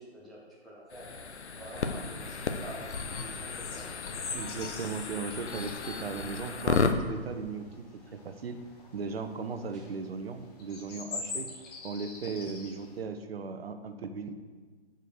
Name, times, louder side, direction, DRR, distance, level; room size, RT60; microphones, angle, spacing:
voice 1, 0.0-4.1 9.7-10.0, right 1 dB, ahead, -10 dB, 0.5 m, -48 dB
sound 1, 0.9-6.9, left 5 dB, 80° left, 0.8 m, -33 dB
sound 2, 1.3-13.0, left 4 dB, 35° left, 1.4 m, -45 dB
voice 2, 4.3-8.6 8.9-11.5 11.8-14.3, right 5 dB, 60° right, 8 dB, 0.8 m, -37 dB
6.6 x 5.3 x 6.4 m, 1.5 s
hypercardioid pair, 145°, 33 cm